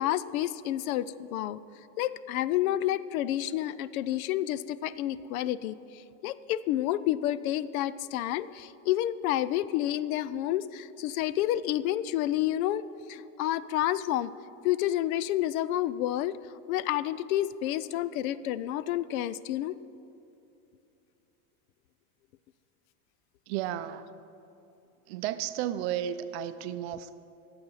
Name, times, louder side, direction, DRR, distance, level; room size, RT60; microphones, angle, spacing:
voice 1, 0.0-1.6 2.0-5.8 6.2-14.3 14.6-16.4 16.7-19.8, left 13 dB, 75° left, 17 dB, 0.5 m, -29 dB
voice 2, 23.5-24.1 25.1-27.1, right 11 dB, 50° right, 12 dB, 0.5 m, -33 dB
11.5 x 7.8 x 5.6 m, 2.8 s
supercardioid pair, 155°, 42 cm